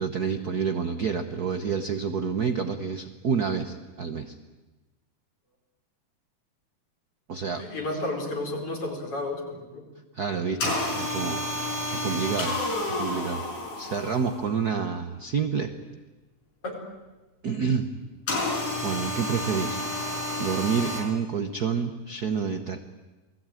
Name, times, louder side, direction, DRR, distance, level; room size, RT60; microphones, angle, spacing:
voice 1, 0.0-4.3 7.3-7.6 10.1-11.4 12.0-12.6 12.9-13.4 13.8-15.7 17.4-17.9 18.8-22.8, right 6 dB, 75° right, 8 dB, 0.8 m, -28 dB
voice 2, 7.6-9.4 9.7-9.8 16.6-16.8, left 2 dB, 45° left, 2 dB, 5.5 m, -31 dB
sound 1, 10.6-14.5 18.3-21.0, left 1 dB, 80° left, 7.6 m, -30 dB
28.5 x 20.0 x 9.1 m, 1.2 s
omnidirectional pair, 3.5 m